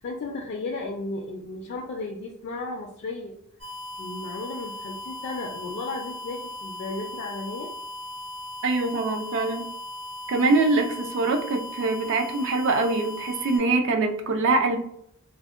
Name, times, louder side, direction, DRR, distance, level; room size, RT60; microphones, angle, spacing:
voice 1, 0.0-3.3 4.0-7.7, left 3 dB, 50° left, 1 dB, 0.3 m, -34 dB
sound 1, 3.6-13.6, left 1 dB, 75° right, 1.3 m, -38 dB
voice 2, 8.6-9.7 10.3-14.8, right 3 dB, 60° right, 5 dB, 0.4 m, -23 dB
2.6 x 2.1 x 2.4 m, 0.73 s
head